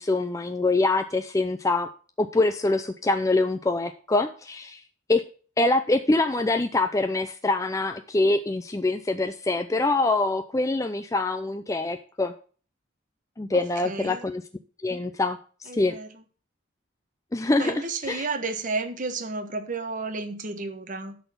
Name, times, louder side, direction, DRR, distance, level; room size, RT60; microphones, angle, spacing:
voice 1, 0.0-1.9 2.2-4.8 5.1-5.2 5.6-12.3 13.4-14.4 14.8-15.9 17.3-18.3, left 2 dB, 15° left, 7 dB, 0.4 m, -24 dB
voice 2, 13.5-14.3 15.7-16.1 17.6-21.2, right 3 dB, 40° right, 7 dB, 1.3 m, -32 dB
12.0 x 4.1 x 6.8 m, 0.41 s
head